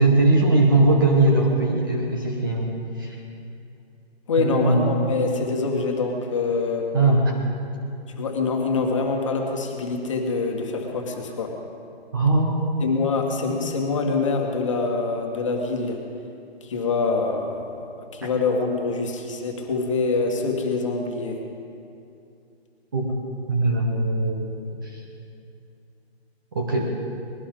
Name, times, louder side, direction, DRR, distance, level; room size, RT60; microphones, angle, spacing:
voice 1, 0.0-3.2 4.4-5.0 6.9-7.4 12.1-12.9 13.6-13.7 22.9-23.1 23.5-25.0 26.5-26.9, right 2 dB, 20° right, -1 dB, 1.0 m, -21 dB
voice 2, 4.3-6.9 8.2-11.6 12.8-16.0 16.6-21.4, left 4 dB, 30° left, 1 dB, 1.8 m, -25 dB
21.0 x 17.0 x 3.8 m, 2.6 s
hypercardioid pair, 175°, 32 cm